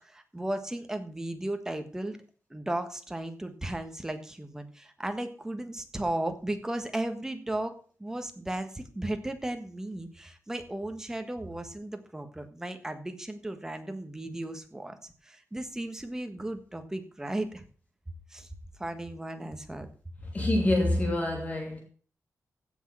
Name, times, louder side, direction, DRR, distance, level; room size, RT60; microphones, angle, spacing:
voice 1, 0.0-2.2 2.5-7.7 8.0-17.6 18.3-18.5 18.8-19.9, right 1 dB, 10° right, 1.4 m, -35 dB
voice 2, 20.3-21.8, left 1 dB, 25° left, 2.8 m, -26 dB
15.5 x 6.5 x 6.1 m
wide cardioid pair, 175°, 6 cm